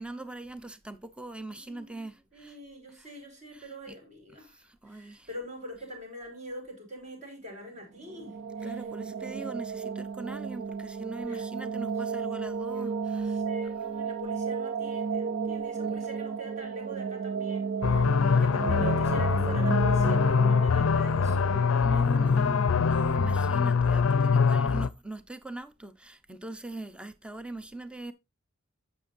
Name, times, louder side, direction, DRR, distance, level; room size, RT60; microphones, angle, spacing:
voice 1, 0.0-2.6 2.9-3.1 3.5-4.0 4.4-5.3 8.6-13.7 15.8-16.0 21.8-28.1, right 2 dB, 5° right, 0.7 m, -41 dB
voice 2, 1.5-2.0 2.3-8.7 9.0-9.1 11.3-11.4 11.8-22.5 24.1-24.6, right 1 dB, 35° right, 4.9 m, -44 dB
sound 1, 8.0-22.9, right 6 dB, 60° right, 0.6 m, -33 dB
sound 2, 17.8-24.9, left 5 dB, 80° left, 0.5 m, -24 dB
11.5 x 8.0 x 2.6 m
head